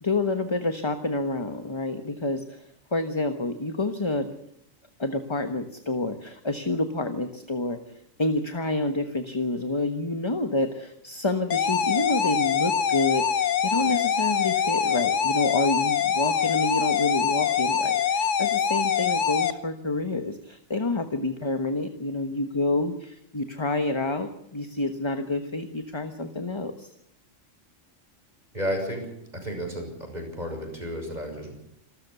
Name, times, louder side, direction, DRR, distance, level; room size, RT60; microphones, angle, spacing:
voice 1, 0.0-2.6 2.9-4.3 5.0-7.8 8.2-26.9, left 2 dB, 20° left, 8 dB, 1.2 m, -28 dB
sound 1, 11.5-19.5, left 7 dB, 65° left, 1.3 m, -24 dB
voice 2, 28.5-29.1 29.3-31.6, equal, 30° right, 3 dB, 6.6 m, -32 dB
27.0 x 13.5 x 8.2 m, 0.75 s
omnidirectional pair, 1.4 m